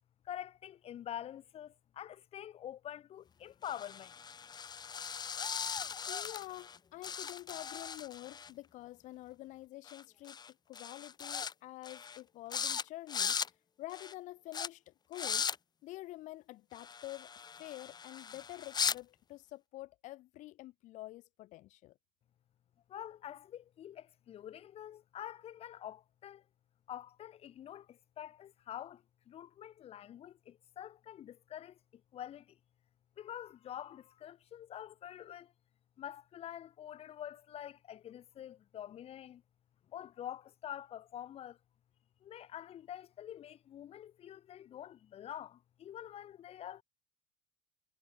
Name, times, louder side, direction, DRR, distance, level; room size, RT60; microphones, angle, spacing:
voice 1, 0.2-4.1 22.9-26.4 26.9-32.6 33.2-35.5 36.0-39.4 39.9-41.6 42.2-46.8, left 11 dB, 45° left, 7.4 m, -47 dB
sound 1, 3.6-6.8 7.0-8.5 9.9-10.0 10.3-10.5 10.8-11.5 11.8-12.2 12.5-12.8 13.1-13.5 13.9-14.1 14.5-14.7 15.1-15.6 16.7-19.0, left 6 dB, 30° left, 3.8 m, -38 dB
voice 2, 6.1-10.4 10.7-15.5 15.8-17.3 17.6-22.0, left 17 dB, 60° left, 5.0 m, -48 dB
supercardioid pair, 110°, 14 cm